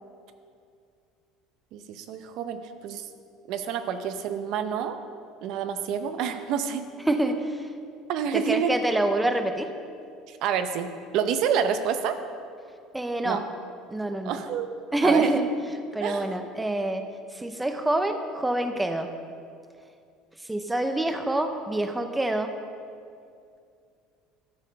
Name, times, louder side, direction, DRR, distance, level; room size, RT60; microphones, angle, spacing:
voice 1, 1.7-3.1 3.5-5.0 5.4-6.9 8.1-8.7 10.3-12.2 13.2-13.4 14.3-14.7 15.0-15.3 16.0-16.6, right 7 dB, 60° right, 9 dB, 0.7 m, -28 dB
voice 2, 7.1-7.7 8.3-9.7 12.9-13.4 13.9-14.4 14.9-15.5 15.9-17.0 17.3-19.1 20.4-22.5, right 2 dB, 5° right, 7 dB, 0.5 m, -26 dB
13.0 x 6.5 x 5.4 m, 2.4 s
cardioid pair, 140°, 0 cm